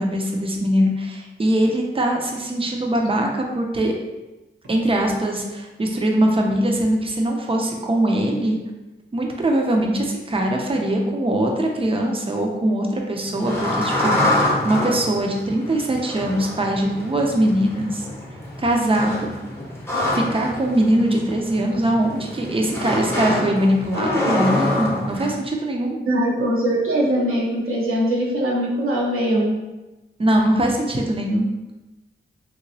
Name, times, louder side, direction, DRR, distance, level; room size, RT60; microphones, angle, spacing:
voice 1, 0.0-3.9 4.7-8.6 9.1-18.1 18.6-19.3 20.1-26.0 30.2-31.5, right 1 dB, 25° right, 1 dB, 0.5 m, -21 dB
sound 1, 13.2-25.3, left 1 dB, 10° left, 0.8 m, -26 dB
voice 2, 26.1-29.5, right 1 dB, 90° right, -4 dB, 0.9 m, -21 dB
3.4 x 2.9 x 2.7 m, 1.1 s
wide cardioid pair, 95°, 21 cm